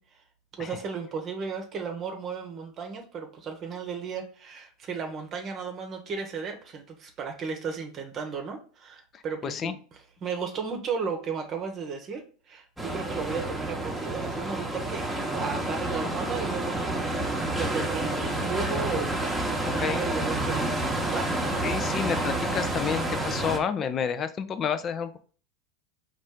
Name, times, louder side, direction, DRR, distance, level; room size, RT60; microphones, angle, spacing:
voice 1, 0.6-9.7 10.2-21.3, right 5 dB, 40° right, 4 dB, 0.8 m, -35 dB
voice 2, 9.1-9.7 19.8-20.0 21.6-25.2, left 7 dB, 35° left, 12 dB, 0.5 m, -30 dB
sound 1, 12.8-23.6, right 1 dB, 5° right, 1.0 m, -29 dB
4.1 x 2.5 x 3.6 m, 0.41 s
hypercardioid pair, 80°, 0 cm